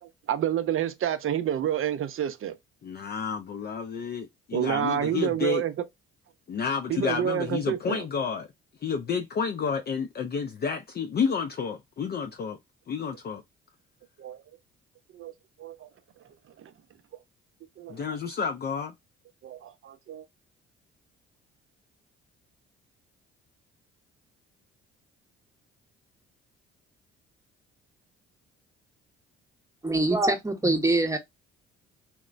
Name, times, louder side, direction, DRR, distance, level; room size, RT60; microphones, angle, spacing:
voice 1, 0.0-2.6 4.5-5.7 6.9-8.0 14.2-14.4 15.1-15.3 15.6-15.9 16.6-16.7 17.8-18.1 19.4-20.3, right 10 dB, 40° right, 0.5 m, -29 dB
voice 2, 2.8-5.6 6.5-8.5 8.8-12.6 12.9-13.4 17.9-18.9, left 6 dB, 30° left, 0.4 m, -30 dB
voice 3, 29.8-31.2, right 2 dB, 10° right, 0.8 m, -24 dB
2.9 x 2.1 x 2.4 m
hypercardioid pair, 50°, 32 cm